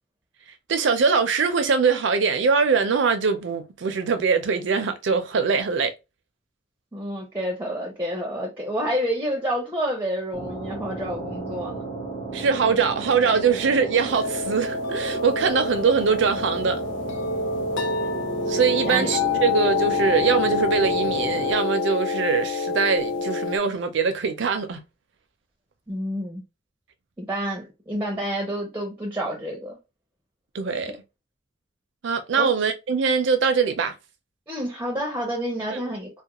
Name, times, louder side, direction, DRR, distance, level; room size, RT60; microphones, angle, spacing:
voice 1, 0.7-5.9 12.3-16.8 18.5-24.8 30.5-30.9 32.0-33.9 35.7-35.8, right 5 dB, 65° right, 0.4 m, -22 dB
voice 2, 6.9-11.9 18.8-19.1 25.9-26.4 27.2-29.8 32.4-32.5 34.5-36.2, equal, 10° right, 0.5 m, -29 dB
sound 1, 10.3-21.5, right 3 dB, 20° left, 0.7 m, -34 dB
sound 2, 14.1-23.6, left 4 dB, 65° left, 0.3 m, -27 dB
2.3 x 2.1 x 2.9 m
head